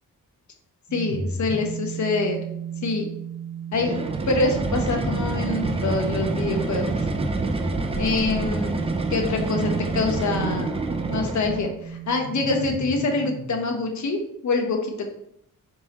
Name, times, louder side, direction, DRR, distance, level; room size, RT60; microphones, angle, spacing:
voice 1, 0.9-2.4 2.8-3.1 3.7-4.0 4.3-7.1 8.0-10.7 11.1-15.1, left 3 dB, 55° left, 3 dB, 0.8 m, -25 dB
sound 1, 0.9-13.7, right 4 dB, 55° right, 0.9 m, -34 dB
sound 2, 3.7-11.8, right 3 dB, 20° right, 0.3 m, -27 dB
4.1 x 3.7 x 2.8 m, 0.75 s
wide cardioid pair, 140°, 35 cm